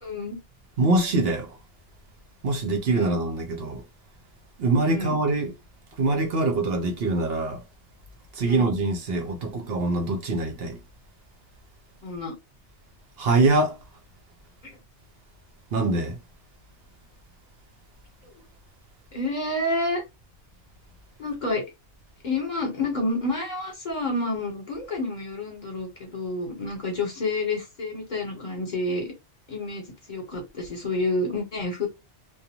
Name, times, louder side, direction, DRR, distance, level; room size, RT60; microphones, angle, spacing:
voice 1, 0.0-0.4 2.9-3.2 4.9-5.2 8.4-8.7 12.0-12.3 14.6-14.8 19.1-20.0 21.2-21.6 22.2-29.1 29.5-31.9, left 2 dB, 45° left, 1.1 m, -29 dB
voice 2, 0.8-1.6 2.4-3.8 4.6-5.5 6.0-7.6 8.3-10.8 13.2-13.8 15.7-16.2, right 2 dB, 65° right, 0.8 m, -24 dB
2.5 x 2.3 x 2.9 m
omnidirectional pair, 1.2 m